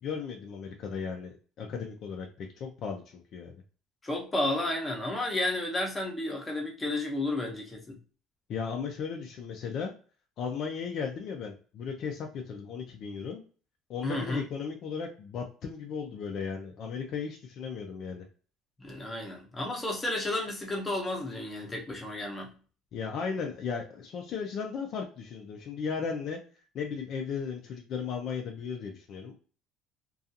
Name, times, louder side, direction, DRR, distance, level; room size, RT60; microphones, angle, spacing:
voice 1, 0.0-3.6 8.5-9.9 10.4-13.4 13.9-18.2 22.9-26.4 26.7-29.3, left 6 dB, 45° left, 2 dB, 0.4 m, -36 dB
voice 2, 4.0-8.0 14.0-14.4 18.8-22.6, left 1 dB, 10° left, 0 dB, 0.7 m, -32 dB
2.5 x 2.3 x 2.7 m, 0.38 s
cardioid pair, 155°, 0 cm